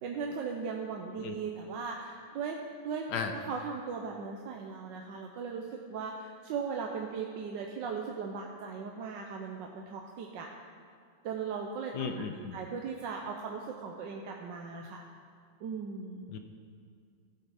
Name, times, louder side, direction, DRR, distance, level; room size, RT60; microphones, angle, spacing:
voice 1, 0.0-2.6 2.8-10.5 11.2-12.1 12.5-15.0 15.6-16.2, right 5 dB, 75° right, 1 dB, 1.4 m, -38 dB
voice 2, 11.9-12.6 16.3-16.4, left 6 dB, 70° left, 6 dB, 1.3 m, -35 dB
15.5 x 8.5 x 4.9 m, 2.3 s
omnidirectional pair, 2.0 m